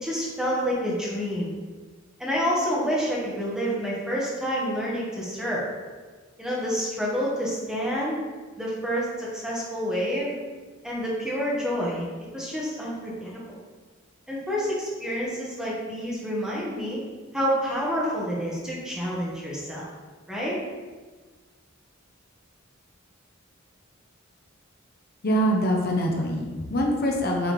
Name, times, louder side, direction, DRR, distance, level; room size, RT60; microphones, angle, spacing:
voice 1, 0.0-1.6 2.2-5.6 6.4-8.2 8.6-10.3 10.8-12.1 12.3-13.6 14.3-17.0 17.3-19.9 20.3-20.5, equal, 5° right, -6 dB, 1.4 m, -28 dB
voice 2, 25.2-27.5, equal, 50° left, 0 dB, 0.8 m, -24 dB
7.9 x 3.8 x 3.3 m, 1.4 s
head